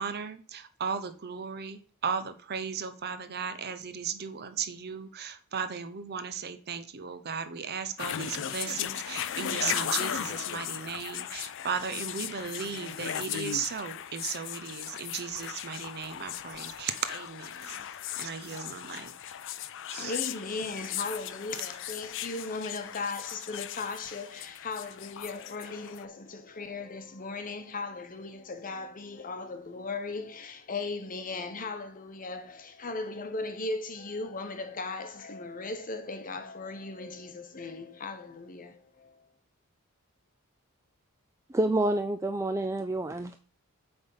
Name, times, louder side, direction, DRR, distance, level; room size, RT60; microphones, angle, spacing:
voice 1, 0.0-17.8 18.1-19.1 19.9-20.2, right 6 dB, 45° right, 0.7 m, -36 dB
sound 1, 8.0-26.0, left 10 dB, 55° left, 0.5 m, -37 dB
voice 2, 19.9-39.2, left 3 dB, 40° left, 0.9 m, -37 dB
voice 3, 41.5-43.4, right 2 dB, 15° right, 0.3 m, -28 dB
8.0 x 3.5 x 5.5 m
head